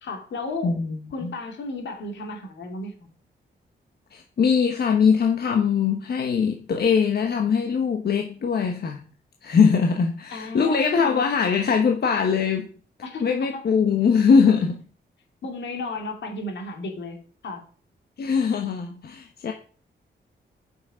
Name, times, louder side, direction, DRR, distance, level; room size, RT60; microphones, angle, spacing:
voice 1, 0.0-0.7 1.1-3.1 10.3-11.2 13.0-13.6 15.4-17.6, left 2 dB, 80° left, 2.5 m, -34 dB
voice 2, 0.6-1.3 4.1-9.0 9.4-12.7 13.2-14.8 18.2-19.5, left 6 dB, 60° left, 1.1 m, -21 dB
7.6 x 6.1 x 5.0 m
cardioid pair, 105°, 18 cm